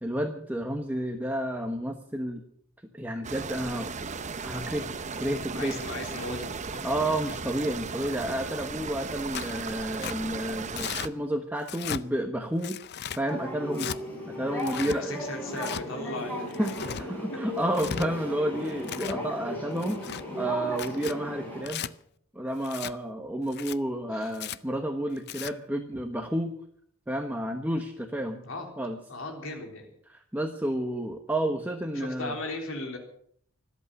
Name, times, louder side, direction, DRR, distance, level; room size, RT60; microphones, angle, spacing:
voice 1, 0.0-2.4 2.9-3.9 4.4-4.9 5.2-5.8 6.8-12.8 13.2-13.9 14.3-15.2 16.6-16.8 17.1-20.0 20.4-21.8 22.3-26.5 27.1-28.4 28.8-29.0 30.1-32.3, right 1 dB, 10° right, 4 dB, 1.1 m, -31 dB
sound 1, 3.2-11.1, right 4 dB, 35° right, 0.8 m, -36 dB
voice 2, 5.5-6.9 14.7-16.9 17.3-17.4 24.1-24.3 28.4-28.7 29.1-29.9 31.9-33.0, left 2 dB, 70° left, 2 dB, 3.8 m, -37 dB
Tearing, 9.3-9.6 10.0-10.2 10.8-11.1 11.6-12.0 12.6-13.2 13.7-14.0 14.6-15.0 15.6-15.8 16.5-17.0 17.6-18.1 18.7-19.2 19.8-20.2 20.7-21.2 21.6-21.9 22.6-22.9 23.5-23.8 24.3-24.6 25.2-25.5, left 9 dB, 50° left, 0.6 m, -36 dB
sound 2, 13.3-21.6, left 1 dB, 10° left, 6.3 m, -36 dB
25.0 x 8.4 x 6.4 m, 0.65 s
head